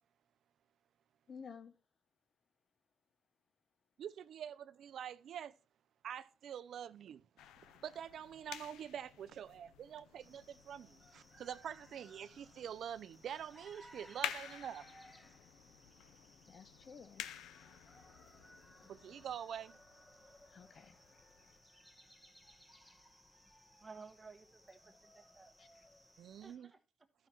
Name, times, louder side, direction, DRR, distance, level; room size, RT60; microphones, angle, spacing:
voice 1, 1.3-1.7 16.5-17.3 20.5-21.0 25.6-25.8, left 6 dB, 50° left, 0.9 m, -53 dB
voice 2, 4.0-5.5 6.0-7.2 7.7-14.8 18.9-19.8 26.2-26.7, right 9 dB, 70° right, 0.4 m, -46 dB
sound 1, 7.4-21.6, left 11 dB, 90° left, 0.5 m, -51 dB
sound 2, 10.2-26.6, equal, 5° left, 1.3 m, -62 dB
voice 3, 23.8-25.5 26.4-26.8, right 4 dB, 25° right, 1.3 m, -55 dB
12.5 x 5.6 x 4.3 m
cardioid pair, 80°, 0 cm